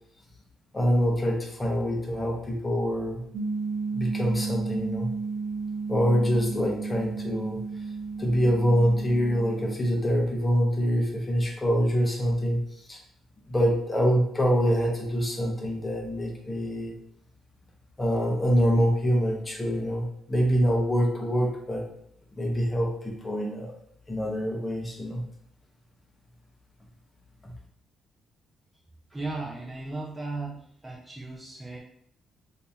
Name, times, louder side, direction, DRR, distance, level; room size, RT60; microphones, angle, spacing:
voice 1, 0.7-3.2 3.9-5.1 5.9-7.6 8.2-12.6 12.9-13.0 13.5-16.9 18.0-21.9 22.4-23.7 24.1-25.2 27.4-27.5, equal, 20° left, 0 dB, 0.9 m, -25 dB
sound 1, 3.3-9.8, right 4 dB, 70° right, 0.5 m, -33 dB
voice 2, 29.1-31.8, right 2 dB, 10° right, -4 dB, 0.7 m, -36 dB
2.8 x 2.8 x 3.5 m, 0.67 s
cardioid pair, 90°, 0 cm